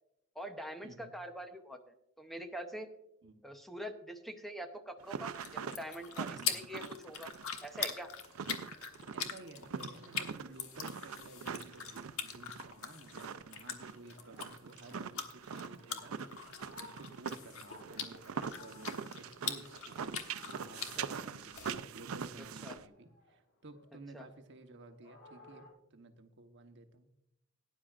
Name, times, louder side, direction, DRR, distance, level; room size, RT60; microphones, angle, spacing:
voice 1, 0.3-2.9 3.4-7.3 7.6-8.1 21.0-21.3 22.6-22.8 24.1-24.3, equal, ahead, 5 dB, 0.7 m, -44 dB
sound 1, 5.0-22.8, right 6 dB, 85° right, 0.5 m, -43 dB
sound 2, 5.1-21.7, left 7 dB, 90° left, 1.3 m, -43 dB
voice 2, 9.1-16.1 16.4-20.2 20.4-27.1, right 2 dB, 60° right, 6 dB, 1.0 m, -54 dB
sound 3, 12.2-22.3 22.7-25.7, left 1 dB, 60° left, 4.2 m, -60 dB
17.5 x 10.0 x 2.4 m, 0.81 s
head